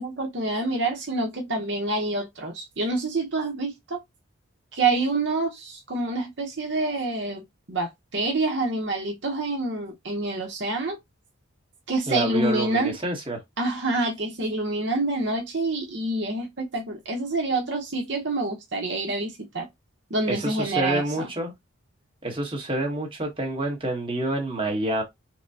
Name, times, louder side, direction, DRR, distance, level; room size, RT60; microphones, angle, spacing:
voice 1, 0.0-4.0 4.7-11.0 11.9-13.0 13.6-19.7 20.1-21.3, right 2 dB, 55° right, 0.9 m, -27 dB
voice 2, 12.1-13.4 20.3-21.5 22.2-25.0, right 1 dB, 25° right, 1.1 m, -27 dB
5.8 x 2.1 x 2.7 m
head